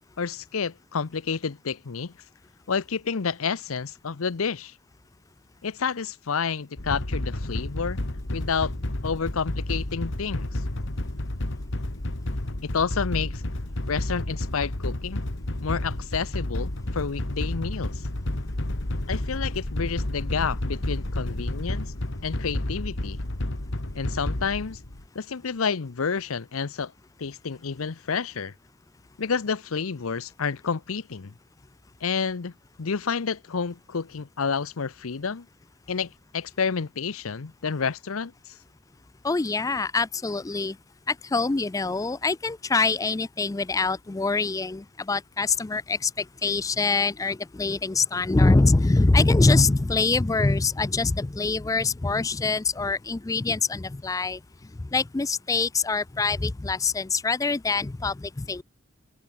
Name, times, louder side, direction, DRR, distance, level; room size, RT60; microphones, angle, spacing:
voice 1, 0.2-2.1 2.7-4.7 5.6-8.0 8.3-8.7 9.0-10.6 12.6-13.4 13.9-15.2 15.6-18.0 19.1-21.9 22.2-23.2 23.9-24.8 25.1-26.9 27.2-28.5 29.2-31.3 32.0-32.5 32.8-35.5 35.9-38.5, left 5 dB, 80° left, 0.7 m, -29 dB
sound 1, 6.8-25.1, left 1 dB, 60° left, 2.0 m, -31 dB
voice 2, 39.2-40.8 41.1-58.6, left 3 dB, 15° left, 0.3 m, -24 dB
open air
head